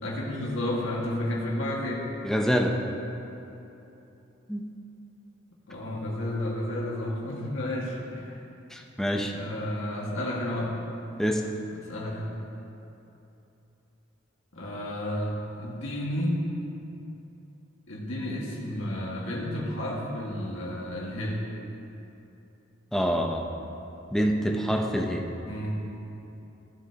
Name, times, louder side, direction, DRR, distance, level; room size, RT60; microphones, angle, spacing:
voice 1, 0.0-2.1 5.7-8.3 9.3-10.7 11.8-12.4 14.5-16.4 17.9-21.4 25.5-25.9, left 1 dB, 85° left, -4 dB, 1.8 m, -31 dB
voice 2, 2.2-2.7 4.5-4.7 8.7-9.3 11.2-11.5 22.9-23.4 24.1-25.2, equal, ahead, 1 dB, 0.7 m, -26 dB
16.0 x 7.7 x 2.9 m, 2.9 s
head